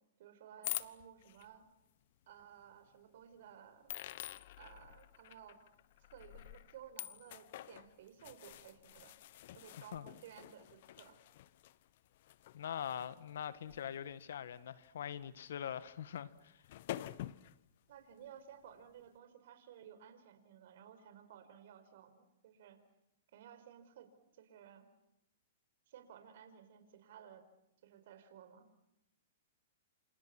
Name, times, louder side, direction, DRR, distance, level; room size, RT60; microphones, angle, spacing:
voice 1, 0.2-1.6 2.3-3.9 4.6-5.6 6.0-9.1 9.5-11.2 17.9-22.8 23.3-24.9 25.9-27.4 27.8-28.7, right 9 dB, 60° right, 4.9 m, -56 dB
sound 1, 0.6-1.5 2.4-2.5 3.9-14.4 14.8-15.0 16.3-16.4 16.6-17.6, left 14 dB, 55° left, 1.1 m, -47 dB
voice 2, 12.5-16.6, left 9 dB, 75° left, 1.6 m, -43 dB
28.5 x 28.0 x 6.1 m
hypercardioid pair, 135°, 0 cm